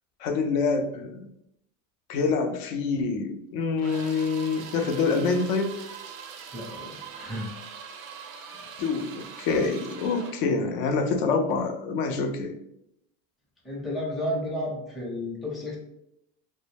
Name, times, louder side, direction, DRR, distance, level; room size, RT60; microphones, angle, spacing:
voice 1, 0.2-1.3 2.1-5.8 8.8-12.5, left 4 dB, 60° left, 5 dB, 0.5 m, -26 dB
sound 1, 3.8-10.5, right 7 dB, 90° right, 0.5 m, -42 dB
voice 2, 6.5-7.6 13.6-15.8, left 1 dB, ahead, -4 dB, 0.5 m, -32 dB
2.1 x 2.0 x 3.3 m, 0.78 s
supercardioid pair, 110°, 39 cm